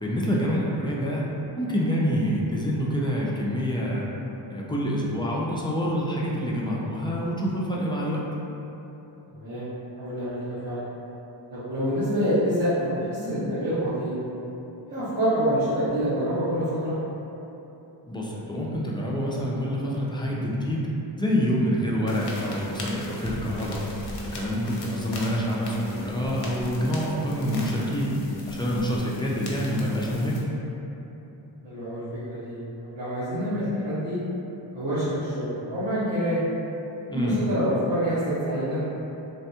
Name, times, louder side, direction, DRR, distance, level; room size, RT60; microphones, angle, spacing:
voice 1, 0.0-1.3 1.6-4.1 4.5-8.3 18.1-20.9 21.2-23.8 24.3-28.1 28.5-30.4 37.1-37.4, equal, 10° left, -5 dB, 0.3 m, -27 dB
voice 2, 9.3-9.7 10.0-10.8 11.5-14.1 14.9-16.9 31.6-34.2 34.7-36.4 37.1-38.8, equal, 45° right, -17 dB, 1.3 m, -27 dB
sound 1, 22.1-30.4, left 1 dB, 60° left, 0.7 m, -36 dB
3.4 x 2.1 x 2.8 m, 3.0 s
cardioid pair, 85°, 48 cm